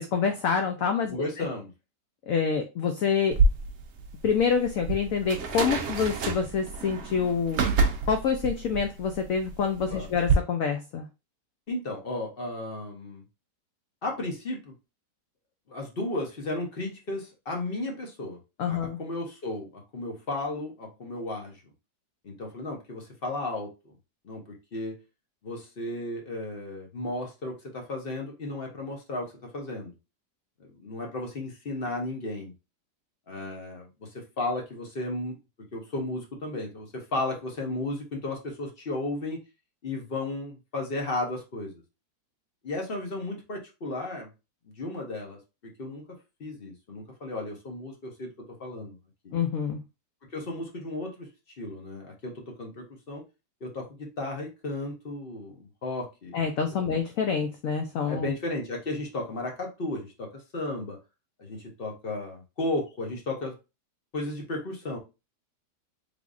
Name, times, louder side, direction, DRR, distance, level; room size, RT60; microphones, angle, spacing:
voice 1, 0.0-1.5 2.3-3.4 4.2-7.6 8.1-11.1 18.6-19.0 49.3-49.8 56.3-58.3, left 6 dB, 75° left, 6 dB, 0.8 m, -27 dB
voice 2, 1.1-1.7 9.9-10.1 11.7-13.2 14.0-14.7 15.7-18.4 18.7-21.6 22.2-23.9 24.2-25.0 25.4-29.9 30.6-32.5 33.3-35.4 35.7-39.4 39.8-41.8 42.6-44.3 44.6-46.0 46.4-48.9 49.2-49.3 50.3-51.3 51.6-53.2 53.6-56.4 56.7-56.8 58.1-61.0 61.4-63.6 64.1-65.0, left 2 dB, 40° left, 1 dB, 0.9 m, -34 dB
sound 1, 3.3-10.3, right 4 dB, 65° right, 0.6 m, -28 dB
3.5 x 3.4 x 2.4 m, 0.27 s
omnidirectional pair, 1.9 m